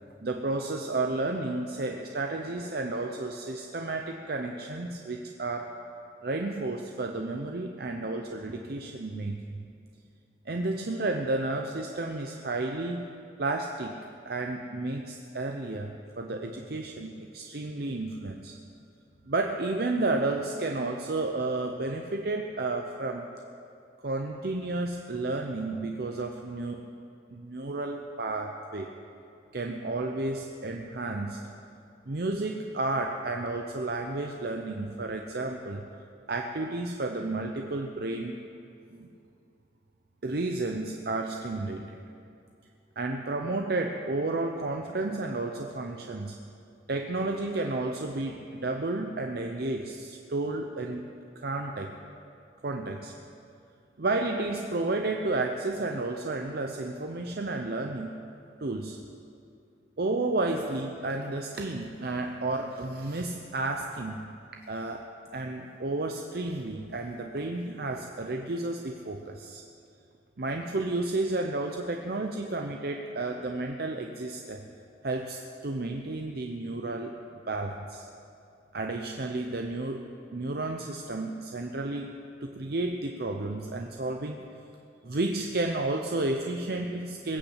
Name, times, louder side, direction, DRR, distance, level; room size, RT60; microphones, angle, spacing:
voice 1, 0.2-5.8 6.2-9.6 10.5-13.1 13.4-14.0 14.3-18.6 19.2-23.3 24.0-26.9 27.3-28.9 29.5-31.5 32.1-35.8 36.3-38.4 38.9-39.1 40.2-42.0 43.0-46.4 46.9-51.1 51.4-52.0 52.6-53.1 54.0-58.2 58.6-59.0 60.0-64.3 64.7-69.6 70.4-74.6 75.0-77.2 77.5-78.1 78.7-82.1 82.4-84.5 85.0-87.4, right 2 dB, 55° right, 3 dB, 0.7 m, -32 dB
20.0 x 7.0 x 8.0 m, 2.6 s
head